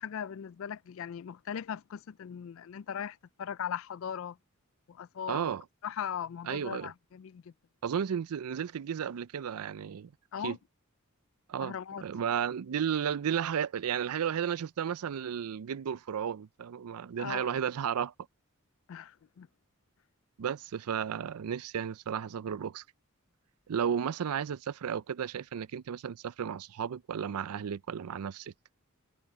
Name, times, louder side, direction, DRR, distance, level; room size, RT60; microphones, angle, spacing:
voice 1, 0.0-4.4 4.9-5.5 5.8-7.5 10.3-10.6 11.6-12.0 17.2-17.5 18.9-19.5, left 8 dB, 65° left, 0.3 m, -39 dB
voice 2, 5.3-5.6 6.5-6.9 7.8-10.1 10.4-10.6 11.5-18.1 20.4-22.8 23.7-28.5, right 8 dB, 90° right, 0.4 m, -33 dB
head